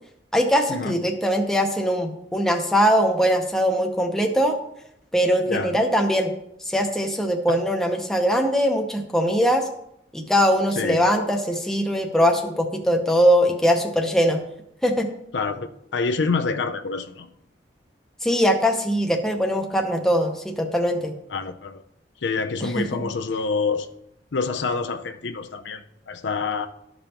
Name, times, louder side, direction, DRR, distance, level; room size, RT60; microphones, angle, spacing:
voice 1, 0.3-4.6 5.1-6.3 6.7-9.7 10.1-14.4 14.8-15.1 18.2-21.1 22.6-23.1, equal, 5° left, 2 dB, 0.7 m, -21 dB
voice 2, 15.3-17.3 21.3-21.8 22.2-23.9 24.3-26.7, left 4 dB, 70° left, 7 dB, 0.5 m, -27 dB
12.5 x 5.3 x 2.9 m, 0.78 s
head